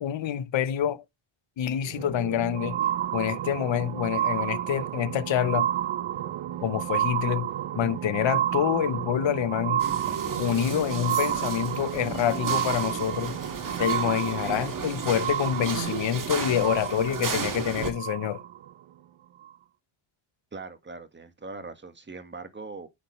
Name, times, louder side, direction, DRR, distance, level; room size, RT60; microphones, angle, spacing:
voice 1, 0.0-1.0 1.6-2.8 3.1-5.7 6.6-7.5 7.7-9.8 10.4-13.3 13.8-18.4, left 10 dB, 65° left, 0.9 m, -27 dB
sound 1, 1.8-18.7 19.4-19.5, right 11 dB, 70° right, 0.8 m, -31 dB
sound 2, 9.8-17.9, right 4 dB, 40° right, 2.1 m, -34 dB
voice 2, 20.5-22.9, right 3 dB, 20° right, 1.7 m, -41 dB
9.2 x 6.8 x 3.2 m
cardioid pair, 100°, 50 cm